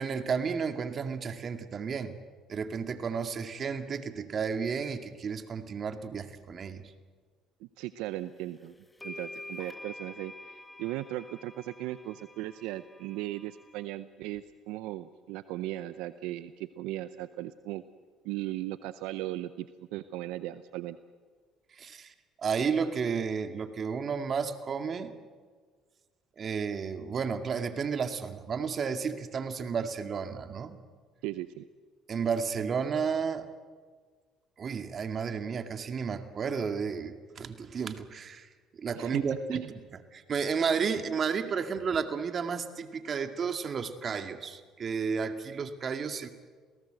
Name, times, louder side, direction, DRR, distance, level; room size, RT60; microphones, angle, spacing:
voice 1, 0.0-2.2 2.5-6.9 21.7-22.1 22.4-25.1 26.4-30.8 32.1-33.5 34.6-38.5 38.7-46.3, right 6 dB, 45° right, 8 dB, 2.2 m, -32 dB
voice 2, 7.6-8.7 9.0-17.8 18.2-21.0 31.2-31.7 39.0-39.2 39.5-39.6, right 15 dB, 80° right, 13 dB, 0.7 m, -37 dB
sound 1, 8.4-8.5 9.0-13.8, left 2 dB, 15° left, 1.7 m, -47 dB
28.0 x 18.0 x 7.9 m, 1.5 s
supercardioid pair, 75°, 0 cm